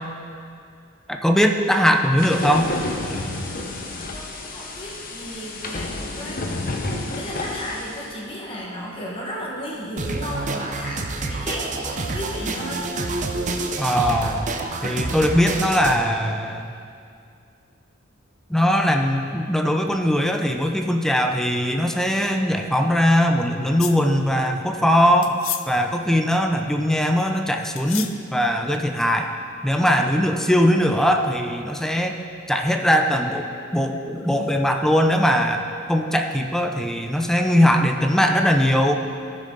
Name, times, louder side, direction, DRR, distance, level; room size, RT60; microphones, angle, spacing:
voice 1, 1.1-2.7 13.8-14.5 14.8-16.7 18.5-25.4 25.7-29.3 29.6-32.2 32.5-39.0, equal, ahead, 3 dB, 0.5 m, -20 dB
sound 1, 2.2-8.1, left 2 dB, 45° left, 0.9 m, -30 dB
voice 2, 4.1-6.4 7.2-12.8, equal, 25° left, -3 dB, 1.4 m, -34 dB
sound 2, 10.0-16.0, right 3 dB, 40° right, 0.6 m, -28 dB
sound 3, 23.8-24.0 25.2-25.7 27.8-28.1, left 13 dB, 70° left, 0.5 m, -30 dB
14.0 x 6.4 x 3.8 m, 2.4 s
head